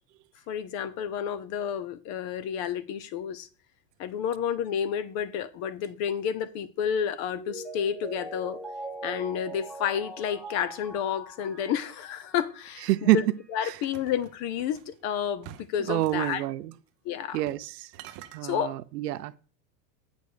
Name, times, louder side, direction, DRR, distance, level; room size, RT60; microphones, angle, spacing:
voice 1, 0.5-3.5 4.0-8.6 9.0-13.2 13.5-16.4 17.0-17.4 18.4-18.7, left 8 dB, 35° left, 0.7 m, -30 dB
Mallet percussion, 7.3-12.8 13.2-13.3, right 2 dB, ahead, 1.1 m, -41 dB
voice 2, 12.9-13.2 13.6-13.8 15.9-16.7 17.3-17.9 18.3-19.4, right 15 dB, 75° right, 0.8 m, -27 dB
sound 1, 13.7-14.9 15.4-16.4 17.3-17.7 17.9-18.4, right 12 dB, 30° right, 0.6 m, -48 dB
8.1 x 5.3 x 6.5 m
supercardioid pair, 135°, 49 cm